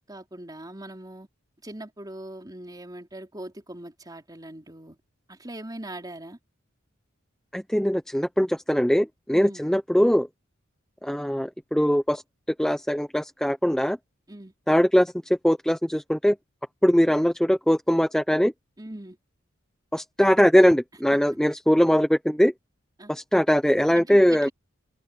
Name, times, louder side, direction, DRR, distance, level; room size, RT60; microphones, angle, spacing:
voice 1, 0.1-1.3 1.6-5.0 5.3-6.4 9.3-9.6 14.3-14.5 18.8-19.2 23.0-23.1 23.9-24.5, right 1 dB, 20° right, 3.7 m, -40 dB
voice 2, 7.5-10.3 11.0-12.2 12.6-14.0 14.7-15.1 15.4-16.4 16.8-18.5 19.9-22.5 23.1-24.5, equal, 5° left, 0.8 m, -21 dB
open air
head